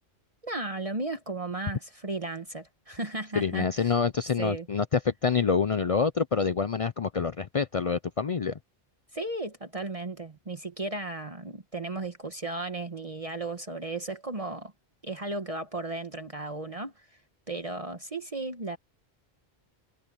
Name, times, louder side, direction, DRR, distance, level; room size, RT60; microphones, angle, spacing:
voice 1, 0.4-4.0 4.4-4.7 9.1-14.7 15.0-17.1 17.5-18.8, right 2 dB, 35° right, 1.2 m, -35 dB
voice 2, 3.4-8.6, left 5 dB, 45° left, 0.5 m, -26 dB
omnidirectional pair, 1.1 m